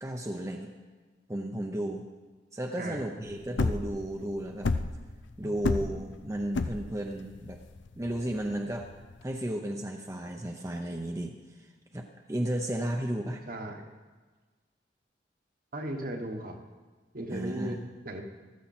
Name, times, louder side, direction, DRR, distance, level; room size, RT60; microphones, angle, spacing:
voice 1, 0.0-0.7 1.3-2.1 2.5-4.7 5.4-7.6 7.9-8.9 9.2-13.4 17.3-17.9, right 1 dB, 15° right, 2 dB, 0.7 m, -34 dB
sound 1, 3.3-9.2, left 3 dB, 85° left, 0.6 m, -31 dB
voice 2, 13.5-13.9 15.7-16.6 17.1-17.8 18.0-18.2, right 1 dB, 50° right, 3 dB, 1.4 m, -36 dB
14.5 x 13.5 x 4.3 m, 1.4 s
head